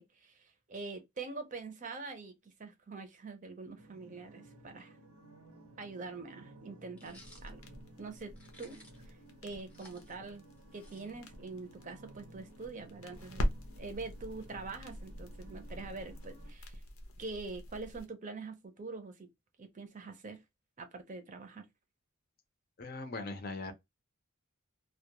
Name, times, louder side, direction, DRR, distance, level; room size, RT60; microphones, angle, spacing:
voice 1, 0.0-5.0 5.8-7.6 8.0-8.3 8.6-8.8 9.0-9.2 9.4-10.4 10.7-13.4 13.8-16.8 17.2-19.3 19.6-20.4 20.8-21.6, right 3 dB, 35° right, 0.6 m, -44 dB
sound 1, 3.8-16.5, right 1 dB, 90° right, 0.7 m, -56 dB
sound 2, 7.0-7.5 8.4-9.1 9.5-11.4, left 1 dB, 5° left, 0.7 m, -59 dB
sound 3, 7.1-18.1, equal, 85° left, 0.6 m, -43 dB
voice 2, 22.8-23.7, left 3 dB, 45° left, 0.5 m, -40 dB
2.2 x 2.2 x 2.8 m
head